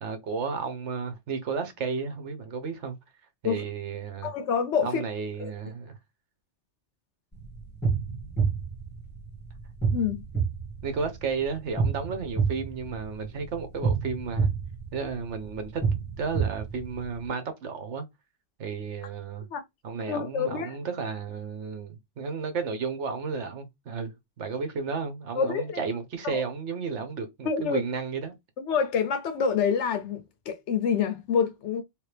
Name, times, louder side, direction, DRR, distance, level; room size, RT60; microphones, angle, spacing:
voice 1, 0.0-3.0 3.4-4.3 4.8-6.0 10.8-14.5 14.9-18.1 18.6-19.5 19.8-28.3, right 5 dB, 70° right, 1.1 m, -33 dB
voice 2, 4.2-5.0 5.4-5.5 9.9-10.2 19.5-19.6 20.1-20.8 25.4-25.8 26.2-26.4 27.4-27.8 28.7-31.8, left 6 dB, 75° left, 0.9 m, -27 dB
sound 1, 7.3-17.3, right 5 dB, 10° left, 1.9 m, -30 dB
3.3 x 2.9 x 3.3 m
omnidirectional pair, 1.2 m